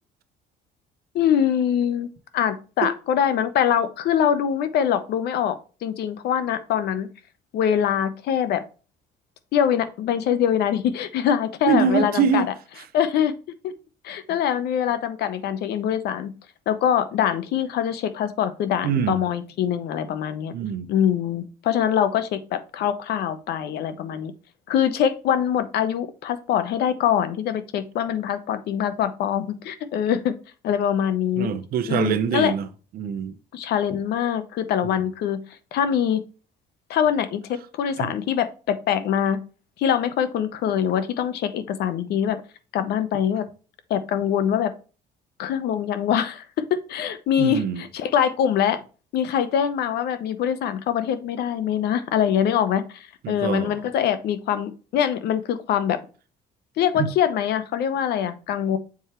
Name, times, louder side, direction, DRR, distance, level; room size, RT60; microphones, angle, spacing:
voice 1, 1.1-2.1 2.3-7.1 7.5-8.6 9.5-12.4 12.9-13.3 13.6-13.7 14.0-16.3 16.7-20.5 20.9-24.3 24.7-30.3 30.6-31.5 31.9-32.5 33.5-35.4 35.7-36.2 36.9-39.4 39.8-42.4 42.7-43.5 43.9-44.7 45.4-46.4 46.7-48.8 49.1-56.0 56.8-58.8, left 9 dB, 75° left, 0.9 m, -23 dB
voice 2, 11.7-12.5 18.8-19.2 20.5-20.9 31.4-32.7 32.9-33.3 38.0-38.1 47.4-47.8 53.2-53.8 57.0-57.1, right 6 dB, 65° right, 0.8 m, -24 dB
7.1 x 4.5 x 3.0 m
cardioid pair, 110°, 17 cm